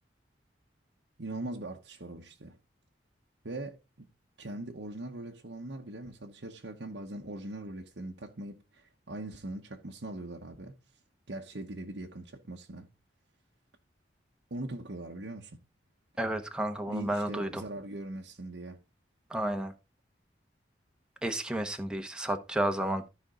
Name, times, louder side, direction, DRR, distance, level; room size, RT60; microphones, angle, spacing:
voice 1, 1.2-2.6 3.4-4.1 4.4-10.7 11.3-12.9 14.5-15.6 16.9-18.8, right 2 dB, 80° right, 1.1 m, -41 dB
voice 2, 16.2-17.6 19.3-19.7 21.2-23.0, right 1 dB, 5° right, 1.0 m, -31 dB
13.5 x 5.3 x 3.8 m
head